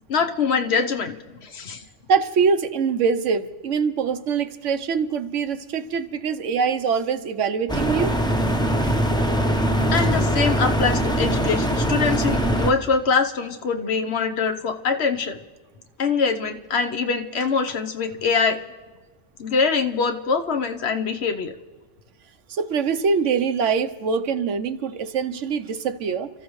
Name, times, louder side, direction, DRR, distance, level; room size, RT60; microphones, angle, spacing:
voice 1, 0.1-1.2 1.4-1.8 9.9-15.4 16.0-18.6 19.4-21.5, left 5 dB, 65° left, 6 dB, 1.1 m, -23 dB
voice 2, 2.1-8.1 22.5-26.3, right 5 dB, 85° right, 10 dB, 1.1 m, -23 dB
sound 1, 7.7-12.7, equal, 5° left, 0.6 m, -22 dB
29.5 x 14.0 x 3.1 m, 1.3 s
omnidirectional pair, 1.2 m